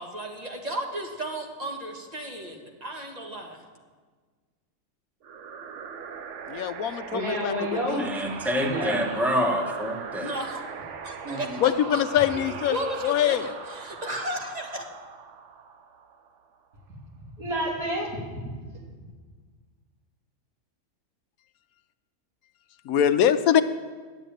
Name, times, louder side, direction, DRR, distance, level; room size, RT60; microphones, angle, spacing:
voice 1, 0.0-3.6 10.2-10.6 11.0-14.9, right 1 dB, 30° right, 1 dB, 1.6 m, -34 dB
sound 1, 5.2-16.6, right 6 dB, 60° right, 1.1 m, -40 dB
voice 2, 6.5-7.5 7.9-8.1 11.6-12.7 13.0-13.5 22.9-23.6, left 10 dB, 85° left, 11 dB, 1.1 m, -23 dB
voice 3, 7.1-8.1 8.6-9.2 11.2-11.8 12.1-12.2 17.2-18.5, equal, 80° right, -3 dB, 3.2 m, -30 dB
voice 4, 8.0-10.3, equal, ahead, 1 dB, 1.2 m, -27 dB
11.0 x 7.9 x 8.9 m, 1.5 s
omnidirectional pair, 1.5 m